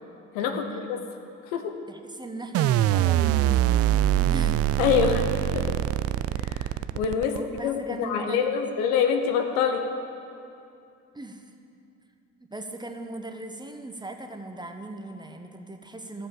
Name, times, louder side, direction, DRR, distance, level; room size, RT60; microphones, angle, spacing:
voice 1, 0.3-1.0 1.5-1.7 4.8-5.2 5.5-5.8 6.3-6.7 6.9-7.4 7.6-9.9, left 7 dB, 65° left, 6 dB, 1.1 m, -25 dB
voice 2, 1.9-3.8 4.3-4.6 5.0-5.3 5.6-5.8 7.3-8.6 11.1-11.4 12.4-16.3, right 1 dB, 10° right, 5 dB, 1.1 m, -38 dB
sound 1, 2.5-7.6, right 12 dB, 40° right, 0.4 m, -23 dB
14.5 x 7.6 x 7.0 m, 2.6 s
hypercardioid pair, 55°, 37 cm